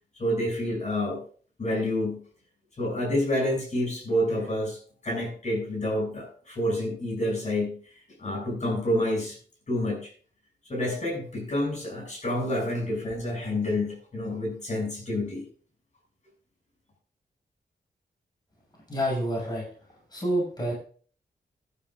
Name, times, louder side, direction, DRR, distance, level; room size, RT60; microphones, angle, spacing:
voice 1, 0.2-1.2 1.6-2.2 2.8-4.8 5.0-7.7 8.2-9.4 9.7-10.1 10.7-15.4, left 1 dB, 40° left, -1 dB, 7.2 m, -28 dB
voice 2, 18.9-19.6 20.1-20.7, equal, 25° left, -5 dB, 6.5 m, -28 dB
15.0 x 11.5 x 2.6 m, 0.43 s
wide cardioid pair, 110°, 18 cm